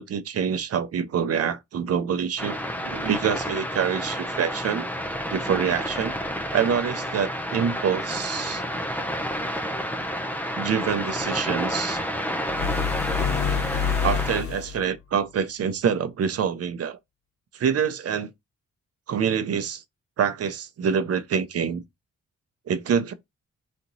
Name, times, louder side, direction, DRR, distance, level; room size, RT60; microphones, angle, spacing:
voice 1, 0.0-4.9 5.3-6.1 6.5-8.6 10.6-12.0 14.0-17.0 17.5-18.3 19.1-19.8 20.2-21.8 22.7-23.1, right 7 dB, 55° right, 0.7 m, -26 dB
sound 1, 2.4-14.4, equal, 5° left, 0.6 m, -30 dB
sound 2, 12.5-14.9, left 8 dB, 50° left, 0.6 m, -27 dB
4.3 x 2.9 x 3.9 m
wide cardioid pair, 125°, 29 cm